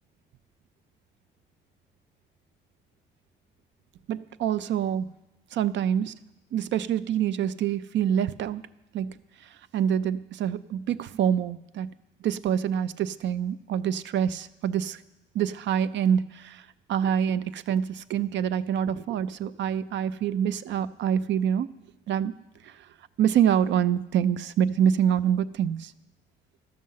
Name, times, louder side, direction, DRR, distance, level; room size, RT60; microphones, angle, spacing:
voice 1, 4.1-5.0 5.5-6.1 6.5-8.6 8.9-9.1 9.7-11.9 12.2-15.0 15.3-16.6 16.9-21.7 22.1-22.3 22.6-22.7 23.2-25.9, right 9 dB, 65° right, 16 dB, 0.4 m, -26 dB
12.5 x 6.4 x 5.5 m, 0.96 s
cardioid pair, 90°, 20 cm